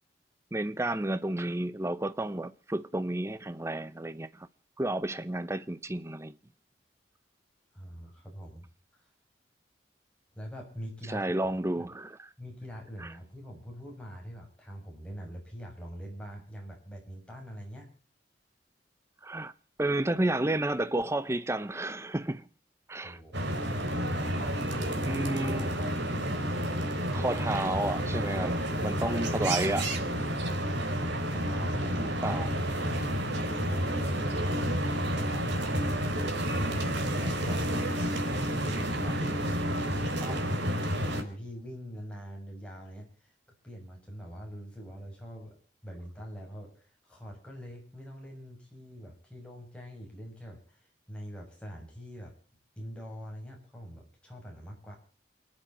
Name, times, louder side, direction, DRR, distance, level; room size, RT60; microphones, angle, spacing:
voice 1, 0.5-4.5 4.8-6.3 11.1-12.3 13.0-13.1 19.2-19.5 19.8-22.4 22.9-23.2 25.1-25.8 27.1-29.9 31.9-32.5 40.2-40.5, right 1 dB, 15° right, 0.7 m, -31 dB
voice 2, 7.7-8.7 8.9-9.0 10.3-11.9 12.4-17.9 22.9-23.7 24.3-26.3 31.2-32.2 32.5-39.4 40.0-43.3 43.6-45.6 45.8-52.3 52.8-55.0, equal, 5° left, 6.9 m, -44 dB
sound 1, 23.3-41.2, equal, 90° right, 3.3 m, -30 dB
28.5 x 10.5 x 4.3 m
head